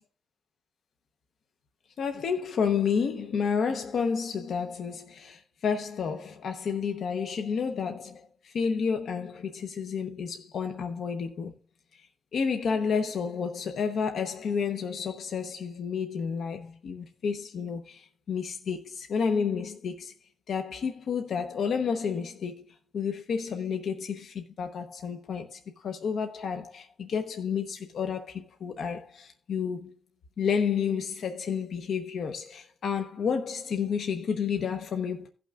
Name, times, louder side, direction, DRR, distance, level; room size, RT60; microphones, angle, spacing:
voice 1, 2.0-11.6 11.9-20.1 20.5-22.6 22.9-29.9 30.4-35.3, left 6 dB, 80° left, 0.9 m, -30 dB
17.0 x 6.0 x 2.4 m
cardioid pair, 105°, 0 cm